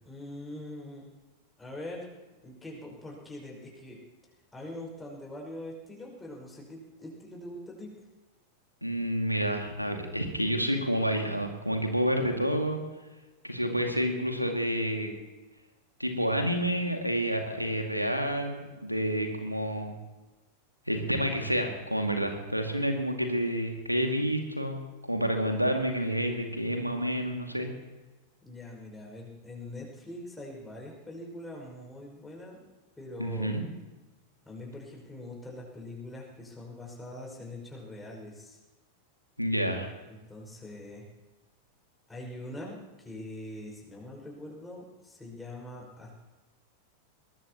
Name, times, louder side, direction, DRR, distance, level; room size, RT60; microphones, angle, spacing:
voice 1, 0.0-1.1 1.6-2.1 2.4-4.0 4.5-7.9 28.4-32.6 33.0-33.6 34.4-38.6 40.1-41.1 42.1-46.2, left 1 dB, 10° left, -2 dB, 5.5 m, -43 dB
voice 2, 8.8-12.8 13.4-15.1 16.0-19.9 20.9-27.7 33.2-33.6 39.4-39.9, equal, 90° right, 4 dB, 2.2 m, -29 dB
22.5 x 19.5 x 3.0 m, 1.2 s
figure-of-eight pair, 90°, 0 cm